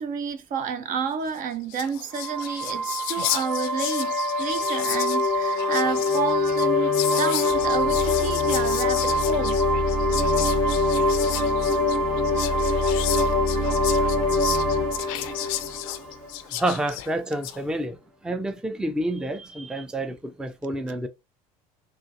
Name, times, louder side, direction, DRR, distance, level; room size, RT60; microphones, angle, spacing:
voice 1, 0.0-9.6, right 6 dB, 45° right, 0.6 m, -30 dB
Whispering, 1.4-1.5 1.6-17.6, left 14 dB, 70° left, 0.4 m, -33 dB
sound 1, 2.1-16.6, left 2 dB, 70° right, 1.9 m, -24 dB
voice 2, 16.5-18.0 18.2-21.1, right 1 dB, 5° right, 0.5 m, -28 dB
3.7 x 2.5 x 2.6 m
hypercardioid pair, 75°, 19 cm